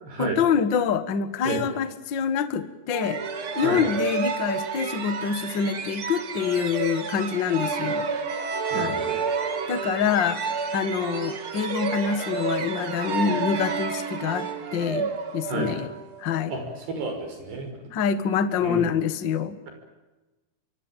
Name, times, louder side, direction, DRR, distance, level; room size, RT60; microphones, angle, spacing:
voice 1, 0.2-3.2 3.5-8.1 8.7-9.0 9.7-10.4 10.7-15.9 16.2-16.5 17.9-19.6, left 7 dB, 60° left, 12 dB, 1.2 m, -26 dB
sound 1, 2.9-16.4, right 5 dB, 40° right, 2.2 m, -30 dB
voice 2, 8.7-9.2 15.5-15.7 16.5-16.6 17.0-17.7 18.6-18.9, right 4 dB, 90° right, 5 dB, 7.9 m, -30 dB
25.5 x 23.5 x 9.1 m, 1.1 s
omnidirectional pair, 4.7 m